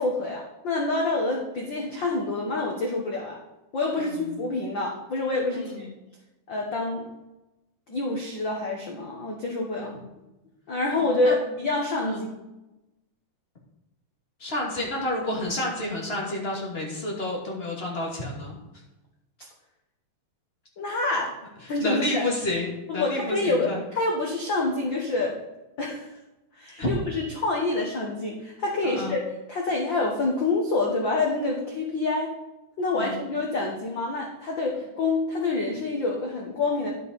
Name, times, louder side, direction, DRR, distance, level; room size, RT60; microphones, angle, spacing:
voice 1, 0.0-3.4 3.7-5.9 6.5-7.1 7.9-9.9 10.7-12.3 20.8-21.3 21.7-22.2 22.9-25.4 25.8-26.1 26.6-32.3 32.8-37.0, left 2 dB, 85° left, -1 dB, 1.0 m, -27 dB
voice 2, 4.0-4.4 5.5-5.9 9.8-10.0 11.0-11.4 12.1-12.3 14.4-18.6 21.6-22.7 22.9-23.8 26.8-26.9 28.8-29.2 32.9-33.1, left 1 dB, 20° left, -2 dB, 2.0 m, -30 dB
11.0 x 8.2 x 4.1 m, 0.99 s
omnidirectional pair, 4.2 m